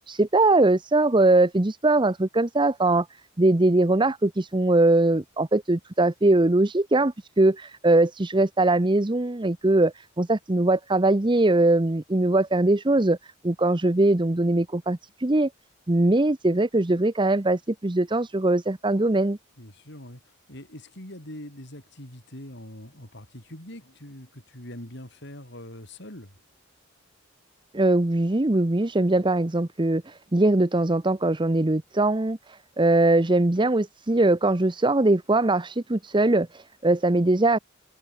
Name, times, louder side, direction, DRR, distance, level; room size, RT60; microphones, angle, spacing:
voice 1, 0.1-3.1 3.4-15.5 15.9-19.4 27.7-37.6, right 2 dB, 25° right, 0.8 m, -21 dB
voice 2, 19.6-26.4, left 1 dB, 55° left, 7.0 m, -43 dB
head